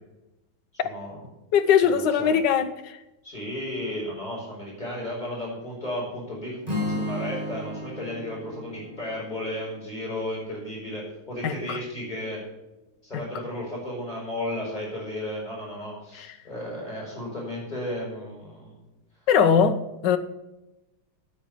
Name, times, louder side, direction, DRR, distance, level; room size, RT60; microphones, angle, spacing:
voice 1, 0.7-1.2 1.8-2.4 3.2-12.4 13.0-18.8, left 1 dB, 20° left, 5.5 m, -34 dB
voice 2, 1.5-2.9 11.4-11.8 16.2-16.3 19.3-19.8 20.0-20.2, left 7 dB, 65° left, 1.5 m, -20 dB
Strum, 6.6-10.8, left 1 dB, 20° right, 2.2 m, -34 dB
9.0 x 8.9 x 8.3 m
omnidirectional pair, 2.1 m